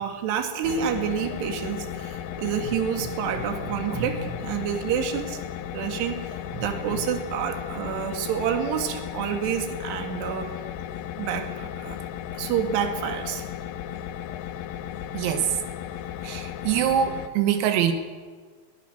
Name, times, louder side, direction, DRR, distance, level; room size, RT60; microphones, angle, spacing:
voice 1, 0.0-5.4 5.7-10.5 11.2-12.0 12.3-13.5, right 7 dB, 60° right, 5 dB, 3.6 m, -28 dB
sound 1, 0.6-17.3, left 10 dB, 75° left, 2.5 m, -35 dB
voice 2, 15.1-15.6 16.2-17.9, right 9 dB, 85° right, 7 dB, 4.1 m, -24 dB
22.0 x 19.5 x 6.6 m, 1.5 s
omnidirectional pair, 6.0 m